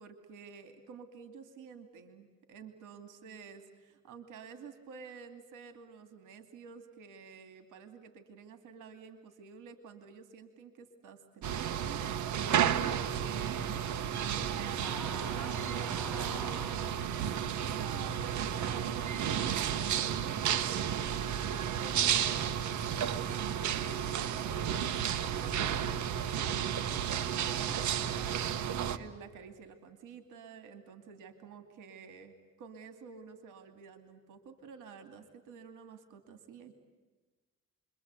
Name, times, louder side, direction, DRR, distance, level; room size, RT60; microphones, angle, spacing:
voice 1, 0.0-13.9 14.3-24.4 24.7-36.7, right 6 dB, 90° right, 8 dB, 2.6 m, -51 dB
sound 1, 11.4-29.0, right 9 dB, 75° right, 1.5 m, -32 dB
sound 2, 14.8-17.0, left 1 dB, ahead, 2.0 m, -46 dB
29.0 x 23.5 x 8.2 m, 1.3 s
cardioid pair, 90°, 30 cm